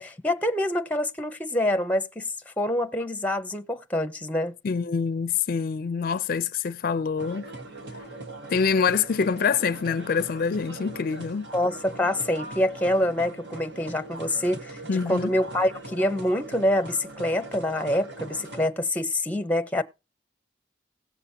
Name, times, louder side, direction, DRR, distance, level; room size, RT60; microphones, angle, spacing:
voice 1, 0.0-2.3 2.6-4.5 11.5-14.8 15.1-19.8, left 1 dB, 10° left, 0.7 m, -26 dB
voice 2, 4.6-7.5 8.5-11.5 14.9-15.3, left 6 dB, 55° left, 0.4 m, -25 dB
sound 1, 7.2-18.7, right 2 dB, 70° right, 1.4 m, -41 dB
17.5 x 6.8 x 2.7 m
head